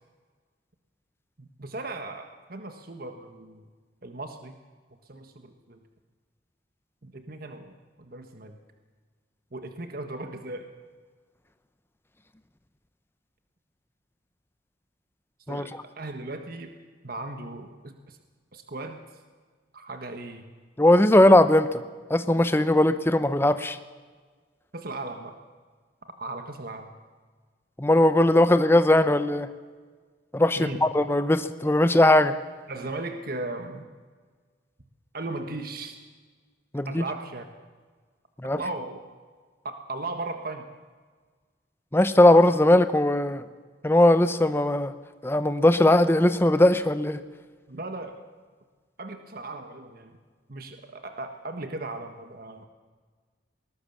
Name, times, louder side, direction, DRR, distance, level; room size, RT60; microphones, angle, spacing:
voice 1, 1.4-3.6 4.0-4.5 5.1-5.8 7.0-7.7 8.0-8.6 9.5-10.7 15.5-16.7 17.0-18.2 18.5-19.0 19.7-20.5 24.7-25.4 26.0-26.9 30.6-30.8 32.7-33.8 35.1-36.0 36.8-37.5 38.4-39.0 39.6-40.7 47.7-48.2 49.0-50.2 50.5-52.7, right 2 dB, 50° right, 6 dB, 1.4 m, -37 dB
voice 2, 20.8-21.8 22.1-23.8 27.8-29.5 30.3-32.3 36.7-37.0 38.4-38.6 41.9-43.4 43.8-44.9 45.2-47.2, left 1 dB, 15° left, 11 dB, 0.7 m, -19 dB
20.0 x 19.5 x 7.2 m, 1.5 s
head